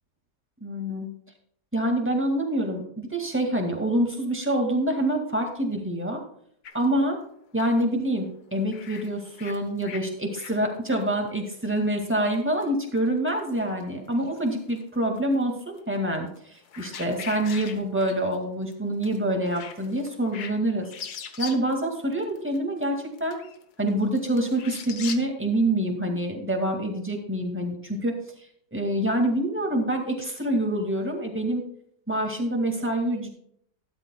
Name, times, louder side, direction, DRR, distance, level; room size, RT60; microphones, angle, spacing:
voice 1, 0.6-1.1 1.7-6.2 6.7-7.2 7.5-20.9 21.4-23.4 23.8-28.1 28.7-31.6 32.1-33.3, right 1 dB, 10° right, 2 dB, 1.9 m, -26 dB
sound 1, 6.6-6.9 7.6-7.8 8.7-10.1 10.4-10.6 10.9-11.1 11.5-12.3 12.6-13.1 13.4-13.8 14.1-14.8 15.2-15.8 16.4-18.4 18.7-18.8 19.0-19.2 19.5-20.6 20.8-21.7 22.1-25.2, left 7 dB, 75° left, 1.5 m, -40 dB
12.5 x 12.0 x 2.3 m, 0.65 s
omnidirectional pair, 1.7 m